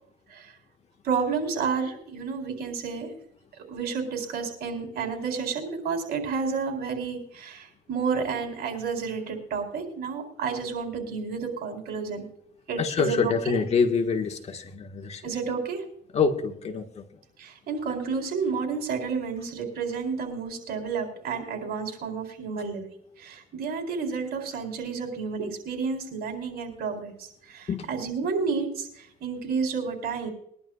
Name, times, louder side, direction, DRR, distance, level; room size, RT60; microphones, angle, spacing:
voice 1, 1.0-3.1 3.7-12.3 12.7-13.6 15.2-15.8 17.4-22.9 23.2-30.3, right 5 dB, 65° right, 2 dB, 4.1 m, -31 dB
voice 2, 12.8-15.2 16.1-17.0 27.7-27.9, left 5 dB, 40° left, 3 dB, 1.6 m, -26 dB
22.5 x 11.0 x 2.4 m, 0.70 s
cardioid pair, 110°, 17 cm